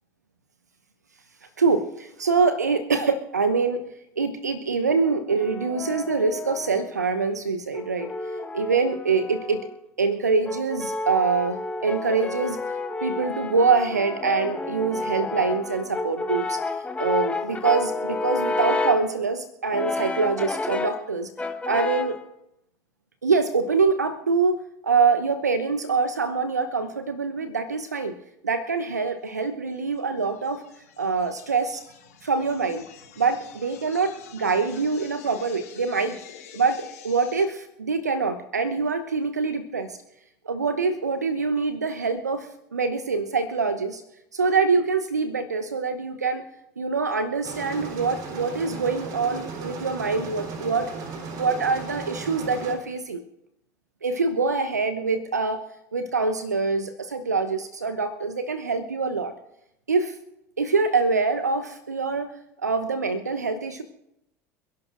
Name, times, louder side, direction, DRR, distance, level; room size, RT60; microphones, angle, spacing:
voice 1, 1.6-3.8 4.2-8.1 8.5-9.6 10.0-12.6 13.0-16.6 17.0-21.3 21.7-22.2 23.2-28.1 28.4-30.6 31.0-31.8 32.2-32.8 33.2-36.2 36.5-40.0 40.4-44.0 44.3-46.4 46.8-50.9 51.4-53.2 54.0-55.6 55.9-59.3 59.9-60.2 60.6-62.3 62.6-63.8, right 4 dB, 85° right, 10 dB, 0.9 m, -24 dB
Brass instrument, 5.0-7.0 7.7-9.8 10.5-19.1 19.7-21.1 21.4-22.2, left 3 dB, 15° left, 1.2 m, -30 dB
sound 1, 29.7-37.4, left 9 dB, 70° left, 5.2 m, -47 dB
sound 2, 47.4-52.8, right 4 dB, 45° right, 3.7 m, -36 dB
28.0 x 11.5 x 2.5 m, 0.81 s
figure-of-eight pair, 70°, 9 cm